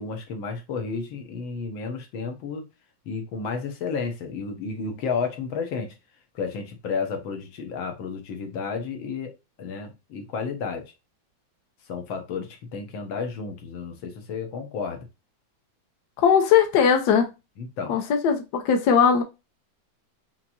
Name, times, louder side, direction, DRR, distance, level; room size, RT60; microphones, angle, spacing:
voice 1, 0.0-2.6 3.1-5.9 6.4-10.9 11.9-15.1 17.6-18.0, left 5 dB, 90° left, 1.9 m, -32 dB
voice 2, 16.2-17.3 17.9-19.2, left 7 dB, 65° left, 1.3 m, -19 dB
5.8 x 3.0 x 2.6 m
omnidirectional pair, 2.1 m